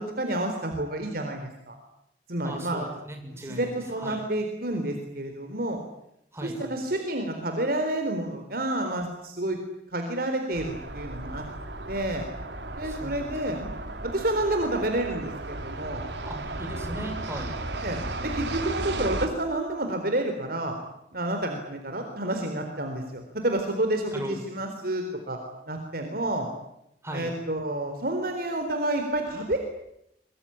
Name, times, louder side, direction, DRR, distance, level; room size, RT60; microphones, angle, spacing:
voice 1, 0.0-1.8 2.3-2.9 3.3-5.8 6.4-9.6 9.9-11.4 11.9-12.2 12.7-13.6 14.0-16.0 17.8-20.8 21.1-25.4 25.7-26.5 27.1-29.6, right 1 dB, 55° right, 5 dB, 4.0 m, -29 dB
voice 2, 2.4-2.8 3.1-3.7 4.0-4.2 6.3-6.7 12.8-13.2 13.5-13.6 16.2-17.5 24.1-24.4 27.0-27.3, right 1 dB, 15° right, 3 dB, 6.7 m, -37 dB
sound 1, 10.5-19.3, right 2 dB, 80° right, 3.3 m, -35 dB
24.0 x 24.0 x 10.0 m, 0.80 s
head